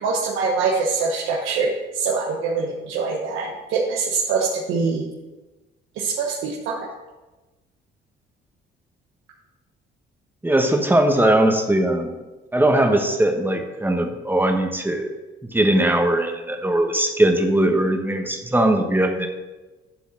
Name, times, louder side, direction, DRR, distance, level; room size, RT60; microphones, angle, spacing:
voice 1, 0.0-1.7 1.9-5.0 6.0-6.9, right 4 dB, 90° right, -2 dB, 1.1 m, -24 dB
voice 2, 10.4-12.1 12.5-15.1 15.4-19.3, right 1 dB, 10° right, 4 dB, 1.2 m, -20 dB
10.5 x 3.9 x 6.4 m, 1.1 s
cardioid pair, 90°, 20 cm